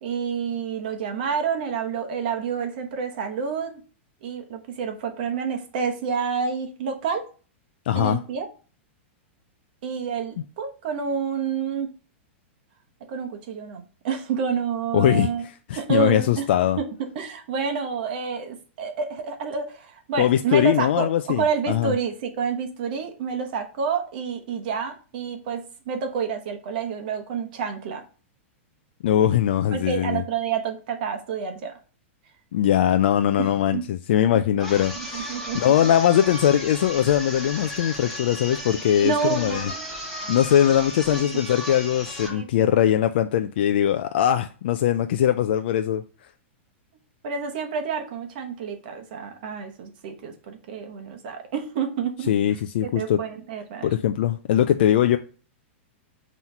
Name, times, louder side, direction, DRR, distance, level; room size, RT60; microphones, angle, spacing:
voice 1, 0.0-3.8 4.2-7.2 7.9-8.5 9.8-11.9 13.1-15.4 15.7-16.4 16.8-28.0 29.7-31.7 33.4-33.8 35.0-35.7 39.0-39.9 41.1-41.4 42.3-42.8 47.2-52.3 52.8-53.9, right 6 dB, 45° right, 1.1 m, -29 dB
voice 2, 7.9-8.2 14.9-15.3 15.7-16.8 20.2-21.9 29.0-30.2 32.5-39.7 40.3-46.0 52.3-53.2 53.8-55.2, left 10 dB, 50° left, 0.3 m, -21 dB
sound 1, 34.6-42.4, left 1 dB, ahead, 1.0 m, -35 dB
5.6 x 3.1 x 5.4 m
supercardioid pair, 175°, 7 cm